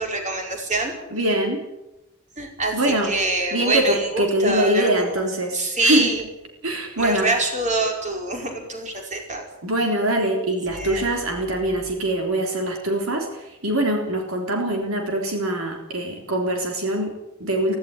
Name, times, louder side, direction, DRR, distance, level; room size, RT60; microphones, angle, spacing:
voice 1, 0.0-0.9 2.4-2.8 3.1-5.2 5.5-6.2 7.0-9.4 10.7-11.1, right 2 dB, 35° right, 2 dB, 5.1 m, -25 dB
voice 2, 1.1-1.6 2.7-3.1 3.5-6.1 6.6-7.3 9.6-17.8, right 1 dB, 75° right, 2 dB, 3.6 m, -23 dB
17.0 x 16.5 x 9.7 m, 0.95 s
head